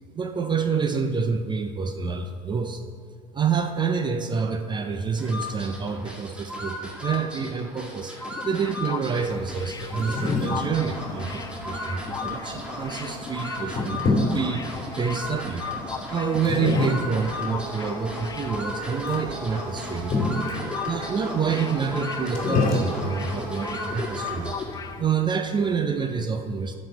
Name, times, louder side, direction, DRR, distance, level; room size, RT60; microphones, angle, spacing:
voice 1, 0.1-2.8 3.3-8.2 8.4-14.6 15.0-15.7 16.1-20.2 20.8-24.5 25.0-26.7, right 6 dB, 25° right, 7 dB, 0.6 m, -27 dB
sound 1, 5.2-24.9, left 1 dB, 5° right, 2.0 m, -35 dB
sound 2, 7.8-19.4 19.6-19.8 20.1-25.0, left 5 dB, 20° left, 0.6 m, -39 dB
sound 3, 9.2-25.0, left 2 dB, 45° left, 2.4 m, -30 dB
11.0 x 5.4 x 7.7 m, 2.1 s
supercardioid pair, 110°, 18 cm